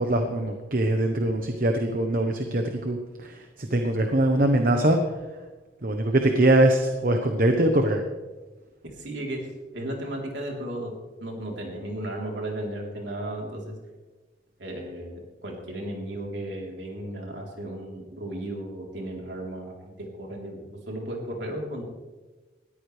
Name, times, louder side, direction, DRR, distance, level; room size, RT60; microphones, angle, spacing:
voice 1, 0.0-5.0 5.8-8.0, right 1 dB, 50° right, 5 dB, 1.1 m, -22 dB
voice 2, 8.8-9.5 9.7-10.9 11.2-13.8 14.6-21.8, right 1 dB, 80° right, -1 dB, 3.7 m, -35 dB
20.0 x 14.0 x 3.4 m, 1.2 s
head